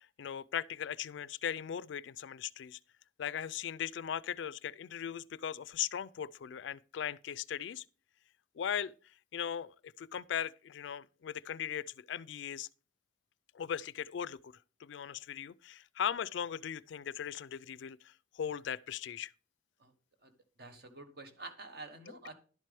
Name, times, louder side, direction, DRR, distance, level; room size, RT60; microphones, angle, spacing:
voice 1, 0.0-2.8 3.2-7.8 8.6-8.9 9.3-12.7 13.5-14.5 14.8-19.3, left 9 dB, 65° left, 0.3 m, -38 dB
voice 2, 20.6-22.3, right 3 dB, 55° right, 1.3 m, -48 dB
11.0 x 7.5 x 3.4 m
head